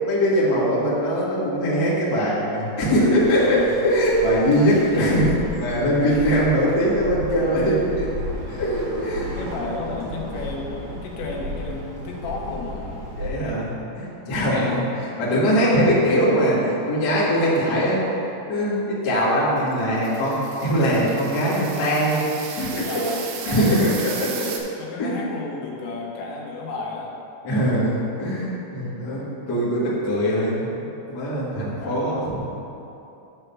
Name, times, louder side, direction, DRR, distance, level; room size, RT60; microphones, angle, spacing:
voice 1, 0.0-8.1 8.5-9.4 13.2-18.0 18.5-22.2 22.6-22.9 23.4-24.5 25.0-25.2 27.4-32.2, equal, 40° left, -9 dB, 1.5 m, -21 dB
Bird, 3.2-13.3, equal, 40° right, 1.9 m, -34 dB
voice 2, 3.4-3.8 4.9-5.3 6.1-6.4 9.4-13.0 14.4-14.9 21.5-21.8 22.1-22.3 22.8-23.8 24.8-27.2 28.8-29.1 31.8-32.3, left 3 dB, 80° left, -2 dB, 3.3 m, -33 dB
sound 1, 19.8-24.6, right 6 dB, 80° right, 2.8 m, -35 dB
10.5 x 3.7 x 6.9 m, 2.9 s
omnidirectional pair, 5.2 m